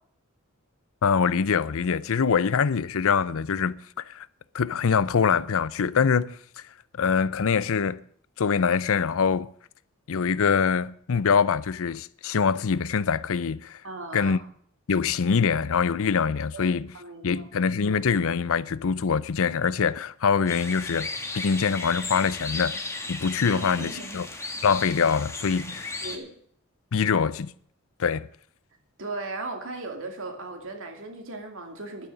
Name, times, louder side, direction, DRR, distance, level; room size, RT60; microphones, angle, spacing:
voice 1, 1.0-4.3 4.5-6.4 6.9-8.0 8.4-9.5 10.1-13.8 14.1-14.4 14.9-16.9 17.2-21.1 21.3-22.8 23.1-24.3 24.6-25.9 26.9-27.5 28.0-28.3, left 6 dB, 70° left, 0.5 m, -24 dB
voice 2, 13.8-14.4 16.5-16.7 16.9-17.4 23.5-24.2 26.0-26.3 29.0-32.1, right 3 dB, 65° right, 2.5 m, -37 dB
sound 1, 20.5-26.2, left 3 dB, 15° left, 1.6 m, -35 dB
11.5 x 9.1 x 6.7 m
head